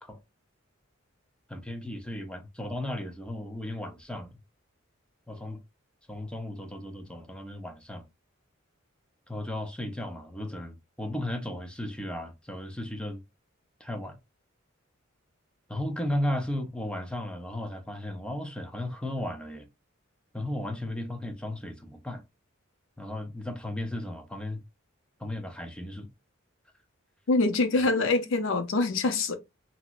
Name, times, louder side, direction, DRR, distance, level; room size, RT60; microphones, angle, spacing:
voice 1, 1.5-4.3 5.3-5.6 6.1-8.1 9.3-13.2 13.8-14.2 15.7-19.7 20.3-22.2 23.0-24.6 25.2-26.1, left 1 dB, 5° left, 0.5 m, -35 dB
voice 2, 27.3-29.3, left 3 dB, 65° left, 0.6 m, -25 dB
2.9 x 2.7 x 2.4 m
head